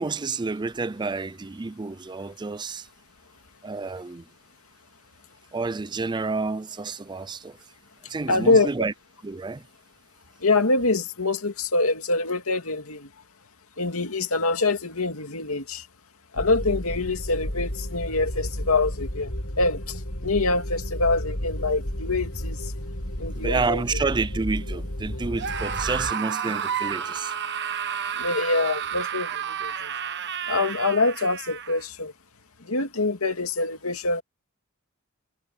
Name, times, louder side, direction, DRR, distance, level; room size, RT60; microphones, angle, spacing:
voice 1, 0.0-2.9 3.6-4.3 5.5-7.6 8.1-8.9 9.2-9.6 23.3-27.3, right 3 dB, 20° right, 0.4 m, -29 dB
voice 2, 8.3-8.7 10.4-13.1 13.8-15.9 16.3-19.3 19.6-22.7 23.2-23.8 26.5-26.6 28.2-29.9 30.5-32.1 32.6-34.2, left 3 dB, 85° left, 2.4 m, -25 dB
sound 1, 16.4-26.1, equal, 70° left, 4.7 m, -32 dB
Screaming, 25.3-31.8, right 8 dB, 55° right, 1.2 m, -31 dB
head